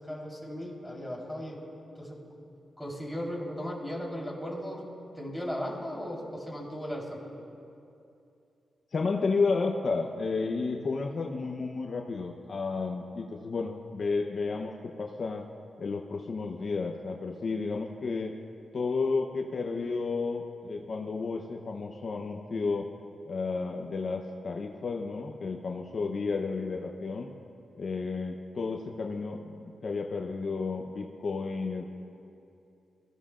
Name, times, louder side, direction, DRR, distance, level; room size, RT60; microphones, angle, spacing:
voice 1, 0.0-1.7 2.0-2.2 2.8-4.8 5.1-7.2, equal, 5° left, -4 dB, 3.9 m, -36 dB
voice 2, 8.9-15.5 15.8-18.3 18.7-22.9 23.3-27.3 27.8-31.8, left 4 dB, 55° left, 2 dB, 0.8 m, -32 dB
24.0 x 15.5 x 2.5 m, 2.6 s
cardioid pair, 100°, 0 cm